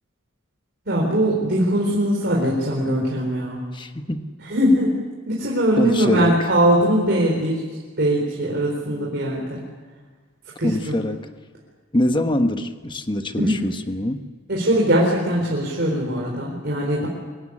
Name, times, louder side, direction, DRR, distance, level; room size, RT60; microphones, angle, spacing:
voice 1, 0.9-3.6 4.5-5.0 5.3-7.6 8.0-9.6 10.6-11.0 13.4-13.7 14.5-17.1, equal, 55° right, -3 dB, 4.2 m, -21 dB
voice 2, 3.7-4.3 5.8-6.4 10.6-11.3 11.9-14.3, left 1 dB, 25° left, 7 dB, 1.2 m, -23 dB
24.5 x 17.0 x 9.9 m, 1.5 s
head